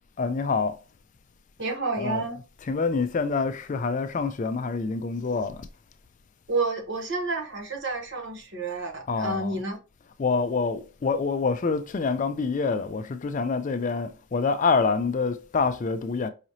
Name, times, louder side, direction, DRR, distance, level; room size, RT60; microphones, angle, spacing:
voice 1, 0.2-0.8 2.0-2.3 2.6-5.7 9.1-9.6 10.2-16.3, left 4 dB, 35° left, 0.3 m, -26 dB
voice 2, 1.6-2.4 6.5-9.8, right 3 dB, 55° right, 1.0 m, -30 dB
4.9 x 3.0 x 2.6 m
head